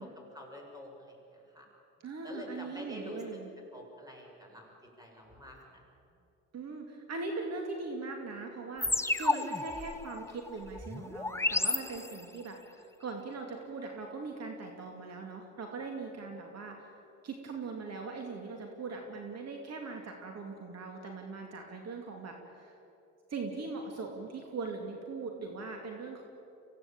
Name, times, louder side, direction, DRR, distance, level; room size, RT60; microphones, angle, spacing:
voice 1, 0.0-1.6 2.2-3.4 3.7-5.8, left 1 dB, 10° right, 0 dB, 6.5 m, -48 dB
voice 2, 2.0-3.5 6.5-16.9 17.2-22.8 23.3-26.2, right 3 dB, 55° right, 2 dB, 2.5 m, -40 dB
sound 1, 8.8-12.5, left 2 dB, 10° left, 1.0 m, -32 dB
24.5 x 16.5 x 8.8 m, 2.8 s
cardioid pair, 90°, 30 cm